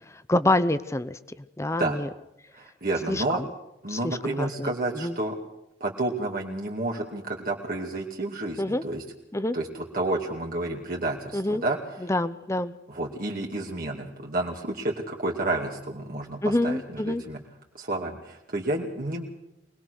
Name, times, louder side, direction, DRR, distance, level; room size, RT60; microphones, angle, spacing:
voice 1, 0.1-1.2 1.6-2.1 3.1-3.5 3.9-5.2 8.6-8.8 9.3-9.6 11.3-11.6 12.0-12.7 16.4-17.2, left 1 dB, 15° left, 13 dB, 0.7 m, -27 dB
voice 2, 2.6-3.4 3.8-5.4 5.8-9.0 9.5-11.8 12.9-17.4 17.8-19.3, right 2 dB, 50° right, -1 dB, 2.4 m, -30 dB
24.5 x 19.5 x 6.5 m, 0.85 s
head